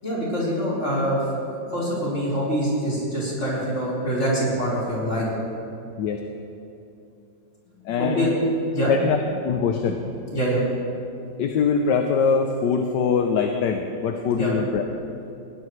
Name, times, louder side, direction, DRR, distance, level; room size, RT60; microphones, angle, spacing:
voice 1, 0.0-1.2 1.5-5.3 8.0-8.3 8.7-8.9 10.3-10.6 14.4-14.5, equal, 35° left, -7 dB, 4.7 m, -25 dB
voice 2, 7.8-8.3 8.9-9.2 9.4-10.0 11.4-14.8, left 6 dB, 70° left, 4 dB, 1.4 m, -22 dB
20.0 x 17.0 x 3.2 m, 2.7 s
omnidirectional pair, 2.0 m